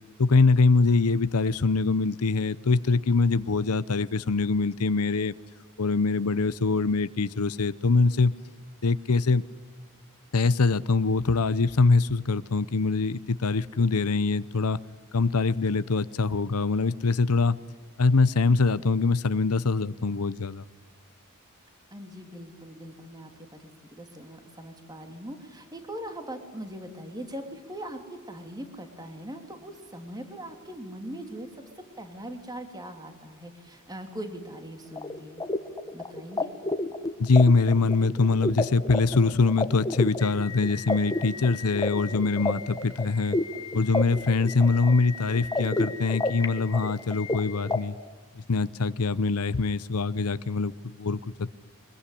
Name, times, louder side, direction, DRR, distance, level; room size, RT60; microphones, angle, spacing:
voice 1, 0.2-5.3 5.8-8.3 8.8-9.4 10.3-14.8 15.1-17.6 18.0-20.6 37.2-43.4 43.7-48.0 48.4-50.7 51.0-51.6, left 4 dB, 85° left, 15 dB, 0.7 m, -23 dB
voice 2, 21.9-23.3 23.6-31.5 32.0-35.4 35.9-36.5, right 1 dB, 20° right, 6 dB, 2.9 m, -41 dB
sound 1, 35.0-47.8, left 2 dB, 20° left, 1.4 m, -31 dB
24.0 x 22.0 x 9.9 m, 1.4 s
head